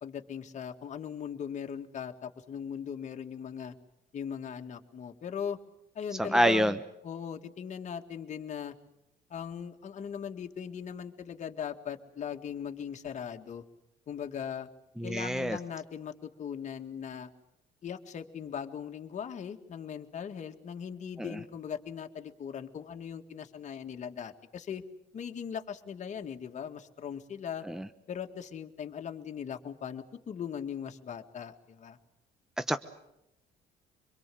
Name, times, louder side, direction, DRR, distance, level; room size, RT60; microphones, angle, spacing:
voice 1, 0.0-3.7 4.1-5.6 5.9-8.8 9.3-13.6 14.1-14.7 15.0-17.3 17.8-24.8 25.1-27.7 28.1-32.0, left 8 dB, 45° left, 5 dB, 2.0 m, -39 dB
voice 2, 6.2-6.8 15.0-15.6 21.2-21.4 27.7-27.8 32.6-32.8, equal, 5° right, 11 dB, 1.0 m, -27 dB
25.5 x 22.0 x 7.8 m, 0.85 s
cardioid pair, 110°, 17 cm